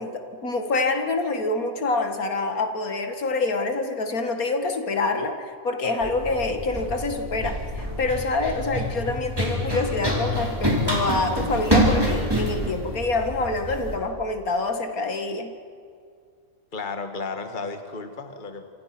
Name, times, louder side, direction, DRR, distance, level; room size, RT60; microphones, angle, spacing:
voice 1, 0.0-15.5, left 3 dB, 75° left, 6 dB, 2.3 m, -26 dB
Run, 6.0-14.0, equal, 15° right, 5.0 m, -26 dB
voice 2, 16.7-18.7, left 4 dB, 35° left, 7 dB, 1.8 m, -33 dB
28.0 x 26.5 x 6.0 m, 2.2 s
omnidirectional pair, 1.5 m